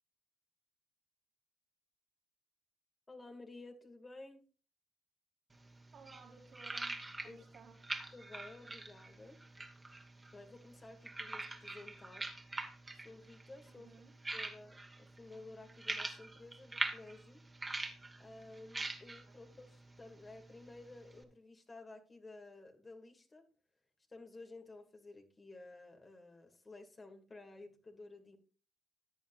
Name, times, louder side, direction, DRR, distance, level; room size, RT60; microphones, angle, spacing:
voice 1, 3.1-4.4 7.2-7.4 8.1-9.4 10.3-12.3 12.9-13.9 14.3-17.4 18.2-23.4 24.1-28.4, left 2 dB, 30° left, 2.5 m, -54 dB
sound 1, 5.5-21.2, right 2 dB, 25° right, 2.0 m, -45 dB
voice 2, 5.9-7.8 13.7-14.2 19.3-19.5, right 5 dB, 60° right, 2.9 m, -59 dB
14.5 x 9.7 x 2.6 m
hypercardioid pair, 55°, 0 cm